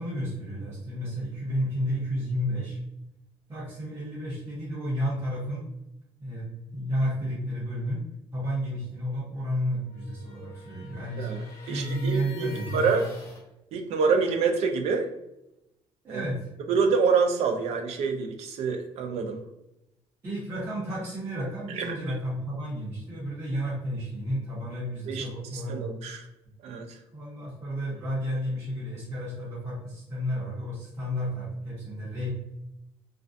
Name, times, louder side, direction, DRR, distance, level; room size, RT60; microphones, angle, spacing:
voice 1, 0.0-2.8 3.5-5.7 6.2-6.5 6.7-11.3 11.6-12.9 16.0-16.5 20.2-25.9 27.1-32.3, equal, 25° right, -10 dB, 0.8 m, -32 dB
sound 1, 9.8-13.4, left 1 dB, 25° left, 0.6 m, -46 dB
voice 2, 11.2-13.0 13.7-15.1 16.1-16.2 16.7-19.4 21.8-22.0 25.1-25.3 25.5-26.2 26.6-27.0, right 5 dB, 75° right, 5 dB, 0.4 m, -26 dB
2.4 x 2.2 x 2.5 m, 0.87 s
cardioid pair, 175°, 11 cm